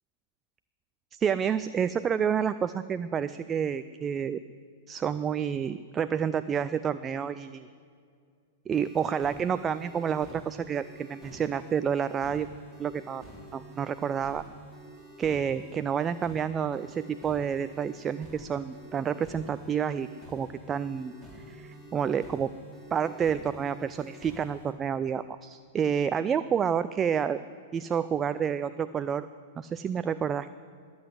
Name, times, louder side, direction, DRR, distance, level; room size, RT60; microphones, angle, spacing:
voice 1, 1.1-4.4 4.9-7.7 8.7-12.5 12.8-13.2 13.5-14.4 15.2-21.1 21.5-22.5 22.9-27.4 27.7-29.3 29.6-30.5, right 7 dB, 20° right, 13 dB, 0.4 m, -29 dB
sound 1, 8.7-24.7, right 1 dB, ahead, 3.7 m, -48 dB
21.5 x 8.0 x 8.1 m, 2.2 s
figure-of-eight pair, 100°, 0 cm